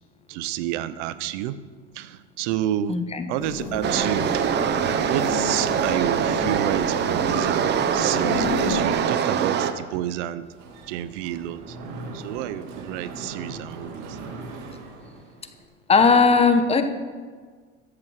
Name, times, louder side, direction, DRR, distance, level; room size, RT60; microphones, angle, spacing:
voice 1, 0.3-1.6 1.9-3.0 3.3-4.5 5.1-10.5 10.9-11.8 12.1-14.2, right 12 dB, 75° right, 15 dB, 0.7 m, -29 dB
voice 2, 2.9-3.2 15.9-16.8, left 4 dB, 15° left, 8 dB, 0.9 m, -17 dB
sound 1, 3.4-8.8, left 3 dB, 40° left, 3.3 m, -32 dB
sound 2, 3.8-9.7, right 8 dB, 30° right, 0.7 m, -23 dB
Mechanisms, 10.5-15.6, right 3 dB, 55° right, 2.1 m, -39 dB
14.0 x 7.5 x 6.3 m, 1.5 s
supercardioid pair, 140°, 35 cm